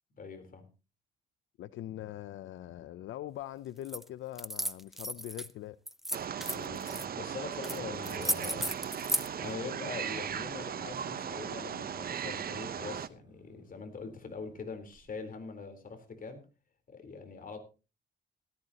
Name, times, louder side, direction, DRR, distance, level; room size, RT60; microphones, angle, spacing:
voice 1, 0.2-0.7 6.5-8.7 9.0-16.4 16.9-17.6, left 4 dB, 45° left, 7 dB, 3.9 m, -43 dB
voice 2, 1.6-5.8, left 13 dB, 75° left, 15 dB, 0.6 m, -42 dB
sound 1, 3.8-4.0 4.3-5.5 5.9-7.0 7.6-7.8 8.0-9.3, equal, ahead, 0.7 m, -34 dB
Wild animals, 6.1-13.1, right 8 dB, 50° right, 0.9 m, -37 dB
sound 2, 6.2-15.4, right 2 dB, 25° right, 4.0 m, -63 dB
17.5 x 13.5 x 2.9 m, 0.32 s
cardioid pair, 90°, 20 cm